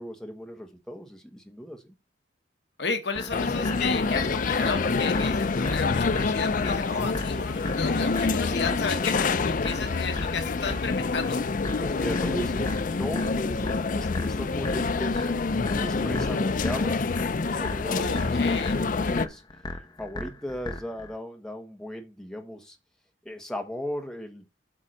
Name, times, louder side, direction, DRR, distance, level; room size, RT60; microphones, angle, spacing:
voice 1, 0.0-1.9 11.8-15.3 15.8-17.0 17.4-19.4 20.0-22.8 23.2-24.4, equal, 5° left, 1.4 m, -37 dB
voice 2, 2.8-11.4 17.8-18.8, left 4 dB, 65° left, 1.1 m, -33 dB
sound 1, 3.1-21.1, left 1 dB, 25° left, 1.1 m, -38 dB
sound 2, 3.3-19.3, left 4 dB, 45° left, 0.4 m, -27 dB
8.5 x 3.7 x 6.4 m
head